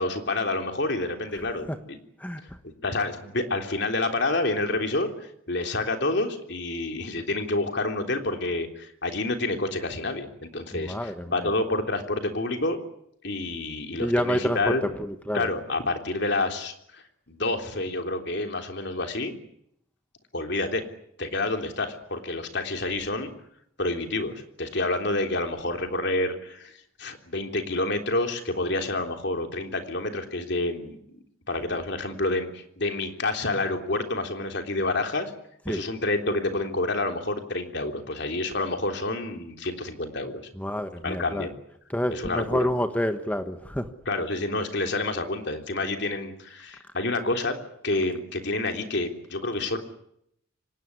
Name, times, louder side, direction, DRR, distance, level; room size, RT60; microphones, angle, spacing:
voice 1, 0.0-2.0 2.8-12.8 13.2-14.8 15.3-19.4 20.3-20.8 21.2-23.3 23.8-26.7 27.0-31.0 31.5-35.3 35.7-40.4 41.0-41.5 42.1-42.7 44.1-47.6 47.8-49.8, left 2 dB, 55° left, 5 dB, 3.5 m, -28 dB
voice 2, 10.8-11.2 14.0-15.5 35.7-35.8 40.6-41.5 41.9-43.9, equal, 5° left, 8 dB, 1.3 m, -28 dB
25.0 x 19.0 x 9.9 m, 0.74 s
head